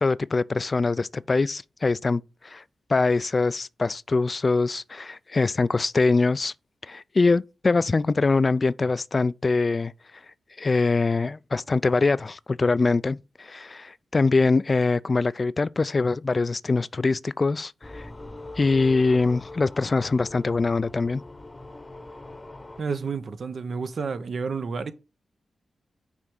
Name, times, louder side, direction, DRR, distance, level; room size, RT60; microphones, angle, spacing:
voice 1, 0.0-2.6 2.9-6.5 6.9-9.9 10.6-18.1 18.6-21.2, left 3 dB, 45° left, 0.3 m, -23 dB
sound 1, 17.8-22.8, left 2 dB, 25° left, 0.9 m, -42 dB
voice 2, 22.8-24.9, right 5 dB, 65° right, 0.8 m, -30 dB
6.1 x 3.5 x 5.5 m
supercardioid pair, 45°, 0 cm